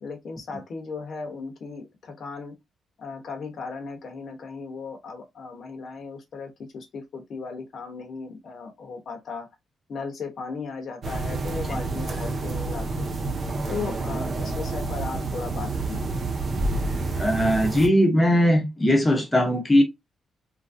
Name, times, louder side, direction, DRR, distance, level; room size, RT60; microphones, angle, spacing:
voice 1, 0.0-2.6 3.0-9.5 9.9-13.1 13.7-16.1, left 4 dB, 45° left, 0.8 m, -36 dB
sound 1, 11.0-17.9, right 3 dB, 40° right, 0.5 m, -29 dB
voice 2, 17.2-19.8, equal, 10° left, 0.7 m, -20 dB
3.0 x 2.5 x 2.5 m
wide cardioid pair, 180°, 0 cm